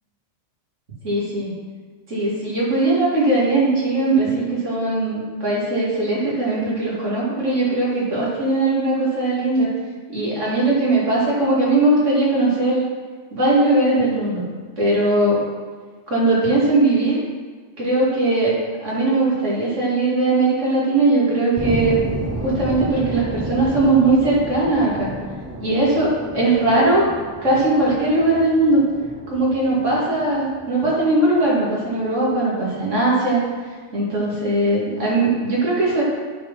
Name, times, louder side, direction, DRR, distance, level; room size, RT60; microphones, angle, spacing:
voice 1, 1.0-1.5 2.1-9.7 10.1-12.8 13.3-14.4 14.8-15.4 16.1-17.2 17.8-18.5 18.8-22.0 22.3-25.1 25.6-27.1 27.4-28.8 29.3-33.4 33.9-36.0, right 2 dB, 90° right, -6 dB, 2.9 m, -19 dB
sound 1, 21.6-32.3, right 1 dB, 20° right, 0.5 m, -31 dB
10.0 x 4.3 x 5.6 m, 1.5 s
omnidirectional pair, 1.2 m